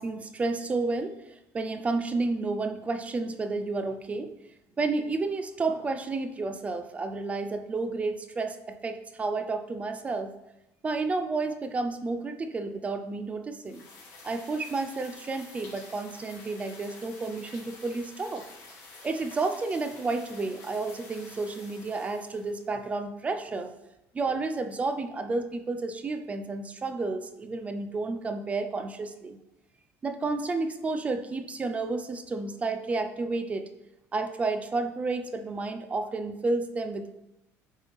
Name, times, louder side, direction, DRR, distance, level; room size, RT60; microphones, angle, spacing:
voice 1, 0.0-4.3 4.8-10.3 10.8-13.8 14.2-18.4 19.0-23.7 24.1-29.4 30.0-33.6 34.1-37.2, right 3 dB, 20° right, 8 dB, 0.4 m, -31 dB
sound 1, 13.6-22.6, left 3 dB, 55° left, 2.1 m, -49 dB
8.5 x 3.2 x 3.5 m, 0.91 s
cardioid pair, 140°, 6 cm